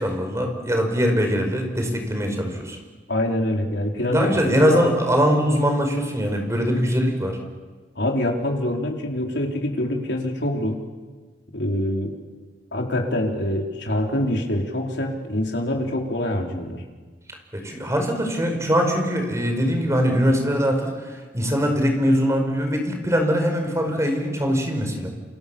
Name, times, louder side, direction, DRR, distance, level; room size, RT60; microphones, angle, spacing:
voice 1, 0.0-2.8 4.0-7.4 17.5-25.1, equal, 15° right, 4 dB, 5.2 m, -22 dB
voice 2, 3.1-4.8 8.0-10.8 11.5-12.1 12.7-16.8, left 1 dB, 80° left, 1 dB, 4.4 m, -25 dB
28.5 x 28.5 x 7.1 m, 1.4 s
head